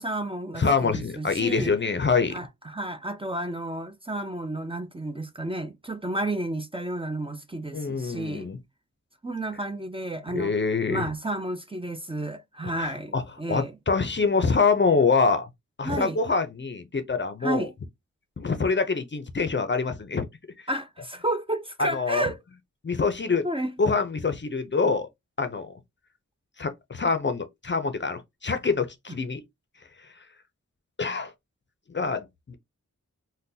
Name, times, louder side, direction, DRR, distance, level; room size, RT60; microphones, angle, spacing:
voice 1, 0.0-1.7 2.3-8.5 9.2-10.5 10.9-13.7 15.8-16.2 17.4-17.7 20.7-22.4 23.4-23.7, right 1 dB, 20° right, 0.5 m, -31 dB
voice 2, 0.6-2.4 7.7-8.6 10.3-11.0 12.8-13.2 13.5-15.5 15.8-17.7 18.4-20.3 21.9-22.2 22.8-23.5 23.8-25.1 25.4-25.7 26.6-29.4 31.0-31.3 31.9-32.5, left 4 dB, 40° left, 0.5 m, -25 dB
3.7 x 2.2 x 2.6 m
wide cardioid pair, 70°, 30 cm